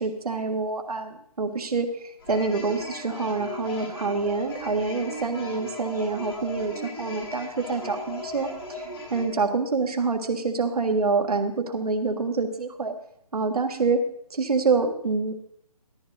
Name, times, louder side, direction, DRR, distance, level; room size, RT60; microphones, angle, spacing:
voice 1, 0.0-8.8 9.1-12.9 13.3-14.0 14.3-15.4, right 4 dB, 75° right, 5 dB, 1.6 m, -26 dB
sound 1, 2.2-9.3, left 2 dB, 40° left, 5.2 m, -37 dB
18.0 x 13.5 x 2.6 m, 0.68 s
hypercardioid pair, 165°, 19 cm